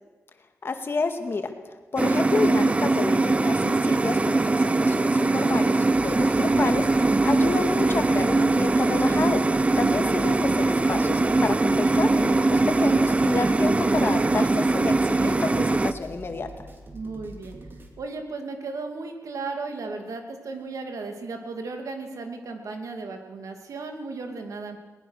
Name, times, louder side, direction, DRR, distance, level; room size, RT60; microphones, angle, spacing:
voice 1, 0.6-1.5 1.9-16.5, left 4 dB, 45° left, 6 dB, 2.0 m, -29 dB
sound 1, 2.0-15.9, right 2 dB, 25° right, 0.6 m, -21 dB
sound 2, 5.9-17.9, right 1 dB, 40° right, 2.8 m, -44 dB
voice 2, 16.9-17.6 18.0-24.8, right 3 dB, 85° right, 4 dB, 2.4 m, -35 dB
21.5 x 19.0 x 6.4 m, 1.2 s
wide cardioid pair, 125°, 6 cm